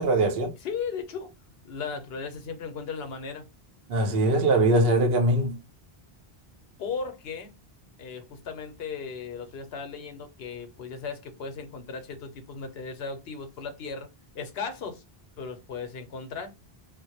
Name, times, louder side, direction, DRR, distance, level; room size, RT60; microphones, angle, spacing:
voice 1, 0.0-0.5 3.9-5.6, right 2 dB, 70° right, 0.8 m, -22 dB
voice 2, 0.6-1.3 1.6-3.5 6.8-7.5 8.0-14.1 14.3-15.0 15.4-16.5, left 5 dB, 80° left, 0.9 m, -36 dB
2.1 x 2.0 x 2.8 m
omnidirectional pair, 1.0 m